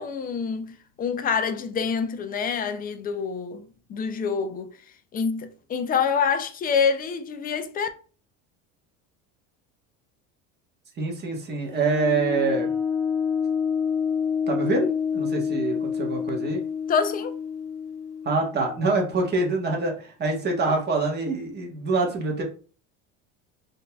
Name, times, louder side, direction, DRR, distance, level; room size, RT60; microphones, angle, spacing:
voice 1, 0.0-4.8 5.1-7.9 16.9-17.3, left 6 dB, 25° left, 0.4 m, -26 dB
voice 2, 11.0-12.7 14.5-16.6 18.2-22.4, right 3 dB, 30° right, 1.2 m, -25 dB
sound 1, 11.7-19.1, left 7 dB, 75° left, 1.0 m, -28 dB
3.9 x 2.7 x 2.3 m
supercardioid pair, 120°, 35 cm